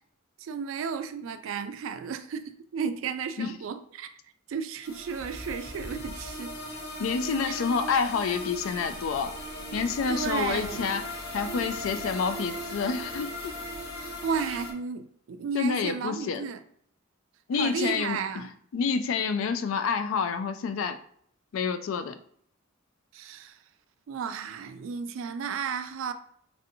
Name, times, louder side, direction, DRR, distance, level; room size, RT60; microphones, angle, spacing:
voice 1, 0.4-4.1 4.5-6.6 10.1-10.9 13.9-16.6 17.5-18.5 23.1-23.6 24.1-26.1, right 6 dB, 70° right, 0.3 m, -33 dB
sound 1, 4.8-14.7, equal, 50° left, 0.7 m, -38 dB
sound 2, 5.2-7.4 7.6-7.7 7.9-10.0 10.5-11.0 11.2-11.3 11.7-12.2 13.1-13.8, equal, 20° right, 0.6 m, -48 dB
voice 2, 7.0-9.3 9.7-11.0 11.3-13.5 15.5-16.5 17.5-21.0 21.5-22.2, left 5 dB, 75° left, 0.3 m, -28 dB
3.3 x 2.6 x 2.7 m
head